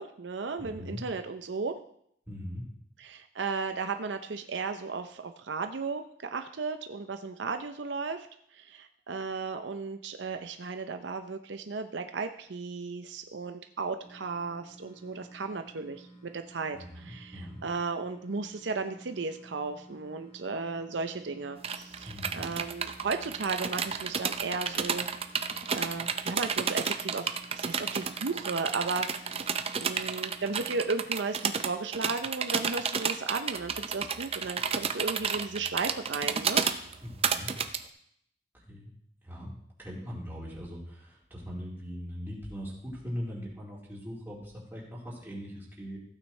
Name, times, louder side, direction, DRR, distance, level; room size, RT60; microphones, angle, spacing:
voice 1, 0.0-1.8 3.0-8.3 8.5-25.1 25.7-29.1 29.4-29.5 29.8-36.6, right 4 dB, 75° right, 7 dB, 0.6 m, -35 dB
voice 2, 0.6-1.0 2.3-2.6 16.8-17.6 22.0-22.4 37.0-37.5 38.7-38.9 39.2-39.5 39.8-46.0, equal, 10° right, -6 dB, 3.9 m, -40 dB
sound 1, 14.0-30.9, right 1 dB, 30° left, 1.3 m, -53 dB
sound 2, 21.6-37.8, right 6 dB, 35° right, 0.6 m, -31 dB
15.5 x 9.0 x 3.2 m, 0.69 s
head